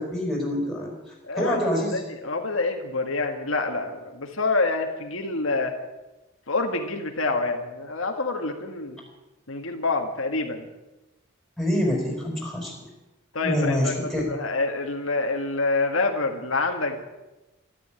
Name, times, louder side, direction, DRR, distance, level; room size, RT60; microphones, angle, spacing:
voice 1, 0.0-2.0 11.6-12.7 13.4-14.3, equal, ahead, -1 dB, 4.8 m, -26 dB
voice 2, 1.2-1.6 1.9-5.7 6.5-9.0 9.5-10.7 13.3-17.0, left 3 dB, 80° left, 4 dB, 1.7 m, -27 dB
13.0 x 12.5 x 8.9 m, 1.0 s
head